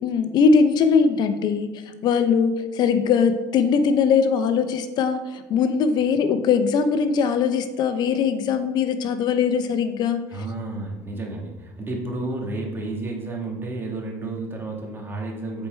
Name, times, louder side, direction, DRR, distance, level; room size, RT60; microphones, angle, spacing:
voice 1, 0.0-1.7 2.0-10.2, left 6 dB, 55° left, 9 dB, 0.7 m, -21 dB
voice 2, 10.3-15.7, right 2 dB, 25° right, -1 dB, 1.8 m, -31 dB
7.2 x 4.5 x 4.4 m, 1.1 s
supercardioid pair, 100°, 9 cm